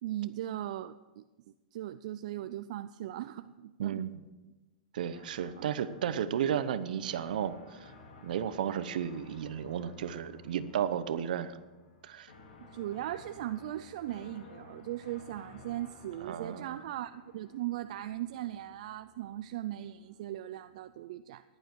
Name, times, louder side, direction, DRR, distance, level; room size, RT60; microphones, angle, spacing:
voice 1, 0.0-1.2 1.7-4.0 5.6-5.7 12.6-21.4, right 13 dB, 50° right, 11 dB, 0.4 m, -38 dB
voice 2, 3.8-4.2 4.9-7.9 8.2-11.5 12.0-12.3 16.2-16.8, right 9 dB, 70° right, 13 dB, 0.8 m, -33 dB
sound 1, 5.1-21.0, left 3 dB, 80° left, 2.8 m, -55 dB
14.5 x 11.0 x 4.6 m, 1.2 s
supercardioid pair, 165°, 5 cm